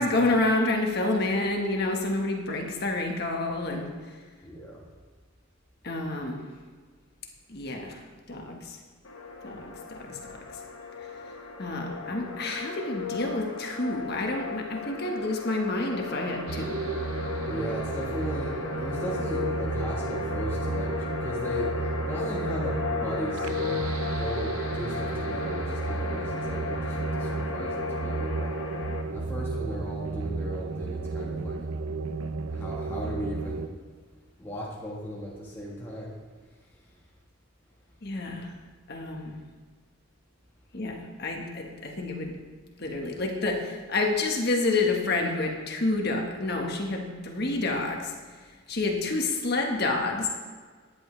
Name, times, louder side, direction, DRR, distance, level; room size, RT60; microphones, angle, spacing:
voice 1, 0.0-3.9 5.8-6.4 7.5-8.0 8.3-8.8 9.4-10.4 11.6-16.8 38.0-38.5 38.9-39.4 40.7-42.4 42.8-48.1 48.7-50.3, left 2 dB, 50° left, 2 dB, 1.5 m, -28 dB
voice 2, 4.4-4.9 10.0-10.3 17.4-21.7 22.0-23.8 24.2-28.5 29.1-31.7 32.5-33.7 34.4-36.1, equal, 10° left, -5 dB, 1.5 m, -36 dB
sound 1, 9.0-29.0, left 4 dB, 65° left, 1.1 m, -35 dB
sound 2, 16.5-33.7, right 3 dB, 80° right, 0.6 m, -33 dB
13.5 x 10.5 x 3.3 m, 1.5 s
head